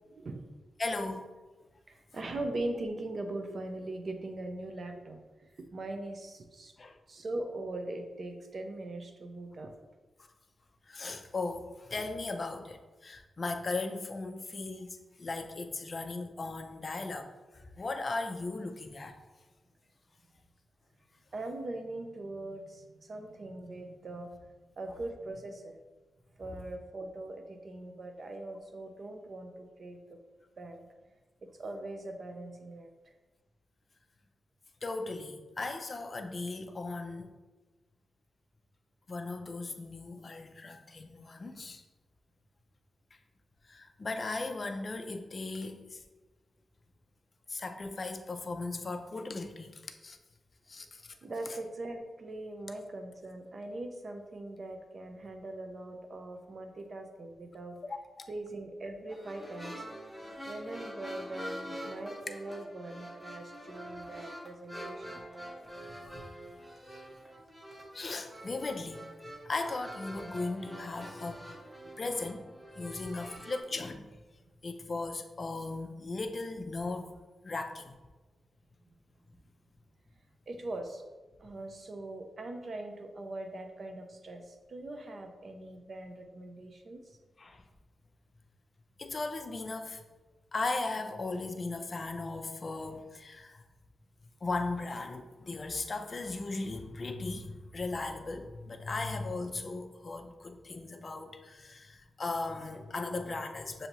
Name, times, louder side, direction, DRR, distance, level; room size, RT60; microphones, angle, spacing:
voice 1, 0.1-0.5 1.9-5.2 5.6-6.7 7.1-9.7 21.3-25.8 26.4-30.2 30.6-30.8 31.6-32.9 51.2-57.8 58.3-59.7 60.4-65.2 80.5-81.0 81.4-87.0, right 2 dB, 45° right, 5 dB, 0.6 m, -41 dB
voice 2, 0.8-1.3 6.8-7.0 10.9-17.3 17.8-19.2 34.8-37.3 39.1-41.8 43.6-46.0 47.5-50.2 50.7-51.1 51.5-51.6 57.8-58.3 66.0-66.2 67.9-71.4 72.0-74.1 74.6-77.1 77.4-77.9 87.4-87.6 89.0-90.0 90.5-93.6 94.4-103.9, left 3 dB, 35° left, 5 dB, 0.4 m, -37 dB
sound 1, 59.1-73.6, equal, 5° right, 0.9 m, -45 dB
6.6 x 2.7 x 2.9 m, 1.2 s
wide cardioid pair, 120°, 0 cm